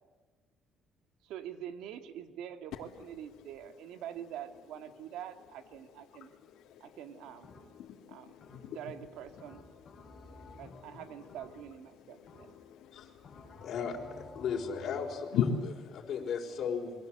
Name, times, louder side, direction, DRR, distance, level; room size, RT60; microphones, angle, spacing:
voice 1, 1.2-6.3 6.8-7.5 8.1-8.3 8.7-9.7 10.6-12.5, right 10 dB, 80° right, 8 dB, 2.1 m, -45 dB
sound 1, 7.4-7.9 8.4-8.9 9.4-11.8 12.3-12.8 13.2-15.2, left 3 dB, 25° left, 7.1 m, -53 dB
voice 2, 7.7-8.8 10.0-10.6 12.5-13.7 15.3-15.5, left 11 dB, 70° left, 0 dB, 3.0 m, -37 dB
voice 3, 13.6-16.9, left 6 dB, 50° left, -1 dB, 5.4 m, -36 dB
28.0 x 23.5 x 8.1 m, 1.4 s
cardioid pair, 130°, 0 cm